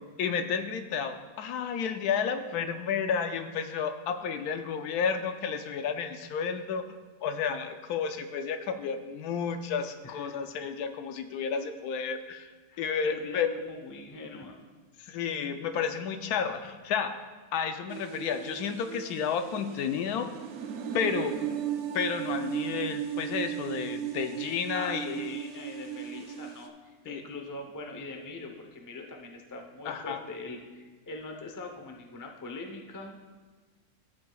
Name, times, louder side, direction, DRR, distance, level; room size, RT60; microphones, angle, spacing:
voice 1, 0.2-6.9 7.2-12.5 12.8-13.5 15.0-17.1 17.5-20.3 20.9-21.3 21.9-25.3 27.1-27.2 29.8-30.2, left 6 dB, 80° left, 8 dB, 1.1 m, -31 dB
voice 2, 10.0-10.4 12.7-14.6 24.7-33.2, left 3 dB, 25° left, 3 dB, 0.4 m, -42 dB
sound 1, 17.9-26.7, right 10 dB, 60° right, 0.8 m, -36 dB
13.0 x 7.9 x 2.3 m, 1.4 s
omnidirectional pair, 1.7 m